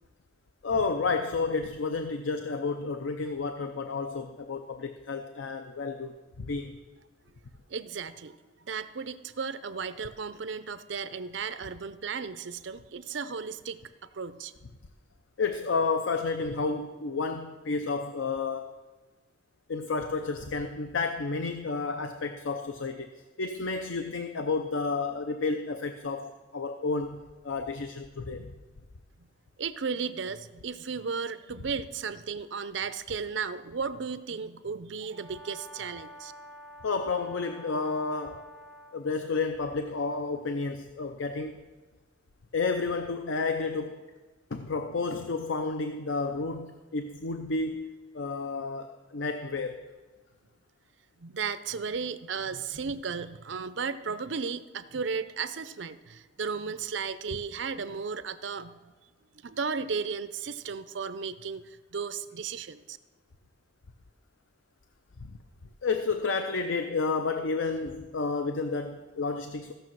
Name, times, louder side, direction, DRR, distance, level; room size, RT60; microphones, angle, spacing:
voice 1, 0.6-6.8 15.4-18.8 19.7-23.1 23.4-28.6 36.8-38.4 38.9-41.6 42.5-44.0 44.5-49.9 65.2-65.4 65.8-69.7, left 4 dB, 85° left, 7 dB, 0.6 m, -31 dB
voice 2, 7.7-8.4 8.6-13.8 14.1-14.5 29.6-36.3 51.2-58.9 59.4-63.0, right 5 dB, 70° right, 13 dB, 0.6 m, -35 dB
Brass instrument, 35.1-39.0, equal, 50° left, 4.5 m, -48 dB
15.0 x 6.6 x 6.1 m, 1.3 s
head